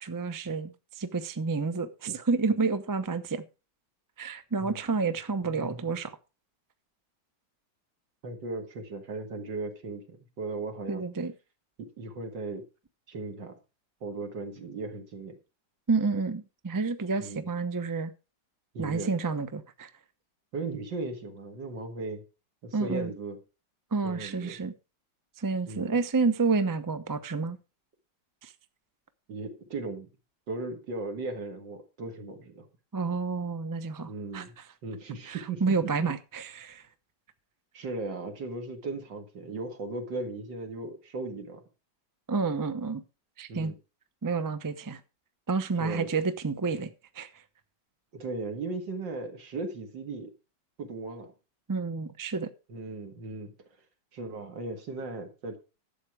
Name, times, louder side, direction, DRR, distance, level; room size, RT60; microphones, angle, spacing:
voice 1, 0.0-3.4 4.2-6.1 10.9-11.3 15.9-18.1 18.8-19.9 22.7-23.1 23.9-24.7 25.4-27.6 28.4-28.5 32.9-34.6 35.3-36.8 42.3-43.0 43.4-43.7 44.2-45.0 45.5-46.9 47.1-47.3 51.7-52.5, right 4 dB, 30° right, 0.3 m, -29 dB
voice 2, 8.2-11.0 11.8-12.6 13.1-13.6 14.0-15.4 17.2-17.5 18.7-19.1 20.5-22.2 22.6-23.4 24.0-24.6 25.7-26.0 29.3-30.1 30.5-32.7 34.1-34.5 34.8-36.1 37.7-41.6 43.5-43.8 45.8-46.1 48.1-50.3 50.8-51.3 52.7-53.5 54.1-55.6, right 3 dB, 75° right, 2.7 m, -37 dB
11.5 x 8.0 x 4.8 m
omnidirectional pair, 2.0 m